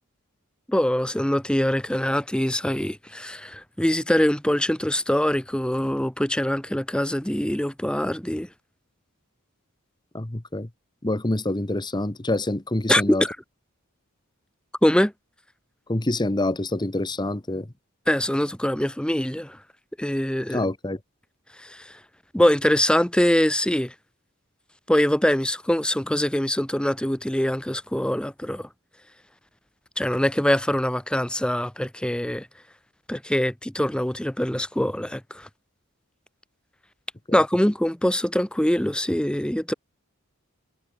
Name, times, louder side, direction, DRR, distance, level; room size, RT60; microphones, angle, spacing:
voice 1, 0.7-8.5 12.9-13.4 14.8-15.1 18.1-19.6 20.0-20.6 21.6-22.0 22.3-23.9 24.9-28.7 30.0-32.5 33.1-35.5 37.3-39.7, left 1 dB, 5° left, 0.8 m, -23 dB
voice 2, 10.1-10.7 11.0-13.2 15.9-17.7 20.5-21.0, left 1 dB, 20° left, 1.1 m, -26 dB
head